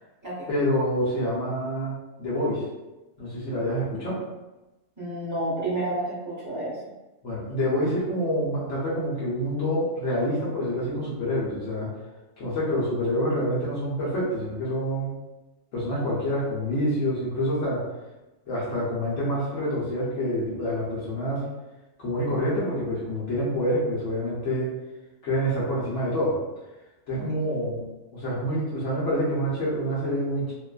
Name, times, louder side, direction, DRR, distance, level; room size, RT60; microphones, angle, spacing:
voice 1, 0.5-2.6 3.2-4.2 7.2-11.9 12.4-15.1 15.7-17.8 18.5-21.5 22.0-24.7 25.2-26.4 27.1-27.8 28.1-30.5, equal, 65° left, -8 dB, 1.0 m, -27 dB
voice 2, 5.0-6.8 27.2-27.3, right 1 dB, 20° right, -8 dB, 0.5 m, -30 dB
2.5 x 2.3 x 2.3 m, 1.0 s
omnidirectional pair, 1.4 m